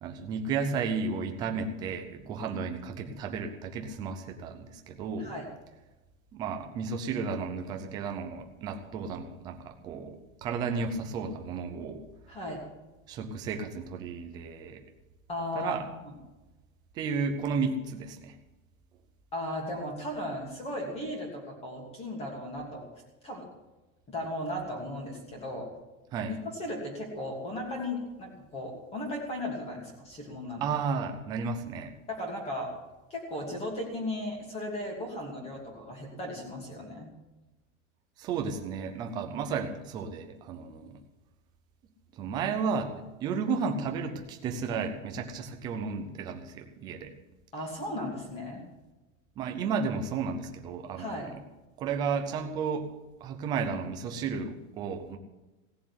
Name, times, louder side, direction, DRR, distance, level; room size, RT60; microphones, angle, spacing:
voice 1, 0.0-5.3 6.3-12.0 13.1-14.8 15.5-15.8 16.9-18.3 26.1-26.4 30.6-31.9 38.2-41.0 42.2-47.1 49.4-51.3 51.8-52.9 53.2-55.2, right 5 dB, 10° right, 5 dB, 0.5 m, -33 dB
voice 2, 12.3-12.6 15.3-15.8 16.0-16.1 19.3-22.8 23.2-23.4 24.1-25.7 26.3-30.7 32.1-32.7 33.1-37.1 47.5-48.6 51.0-51.3, left 1 dB, 15° left, 0 dB, 2.8 m, -36 dB
17.0 x 7.3 x 9.6 m, 1.1 s
supercardioid pair, 175°, 43 cm